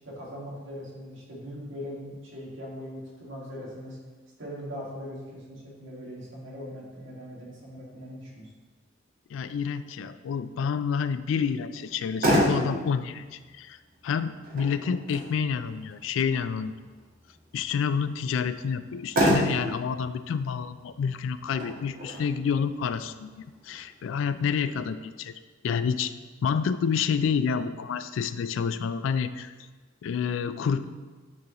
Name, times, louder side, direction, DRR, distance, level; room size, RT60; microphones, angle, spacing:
voice 1, 0.1-4.0 4.4-8.5, equal, 80° right, -4 dB, 1.8 m, -40 dB
voice 2, 9.3-13.8 14.0-16.7 17.5-25.3 25.6-26.1 26.4-29.5 30.0-30.8, left 6 dB, 70° left, 12 dB, 0.3 m, -28 dB
Motor vehicle (road), 11.8-24.8, equal, 50° right, 1.4 m, -31 dB
9.6 x 3.9 x 2.9 m, 1.3 s
head